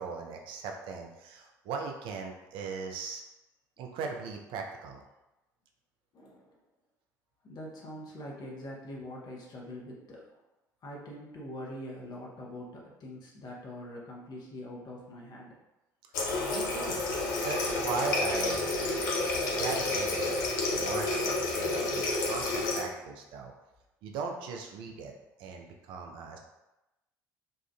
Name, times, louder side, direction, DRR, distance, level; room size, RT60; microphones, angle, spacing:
voice 1, 0.0-3.2 3.8-5.0 16.5-17.0 17.4-18.7 19.5-20.4 20.7-23.5 24.0-25.1 25.4-26.4, right 5 dB, 55° right, 2 dB, 0.4 m, -38 dB
voice 2, 6.1-6.5 7.4-10.2 10.8-15.5 19.4-19.7, left 1 dB, 45° left, -3 dB, 0.8 m, -44 dB
Water tap faucet, 16.1-22.8, left 2 dB, 70° left, 0.5 m, -30 dB
2.7 x 2.3 x 2.2 m, 0.98 s
figure-of-eight pair, 55°, 10 cm